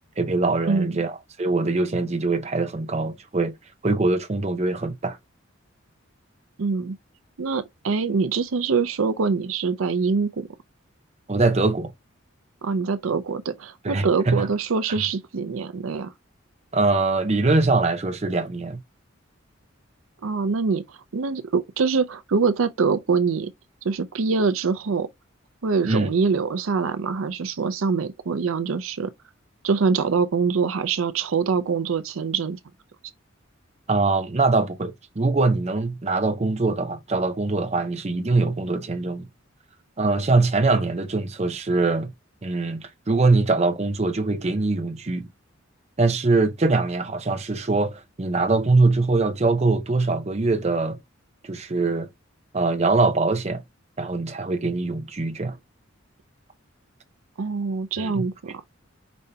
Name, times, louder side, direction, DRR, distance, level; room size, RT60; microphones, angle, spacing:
voice 1, 0.2-3.5 3.8-5.2 11.3-11.9 13.8-14.5 16.7-18.8 25.9-26.1 33.9-39.2 40.0-42.1 42.4-45.3 46.0-51.0 51.4-52.1 52.5-53.6 54.0-55.6 58.0-58.2, right 3 dB, 30° right, 0.6 m, -23 dB
voice 2, 0.7-1.0 6.6-7.0 7.4-10.5 12.6-16.1 20.2-23.5 23.8-25.1 25.6-29.1 29.6-32.6 57.4-58.6, right 5 dB, 85° right, 0.6 m, -24 dB
5.2 x 2.8 x 3.4 m
head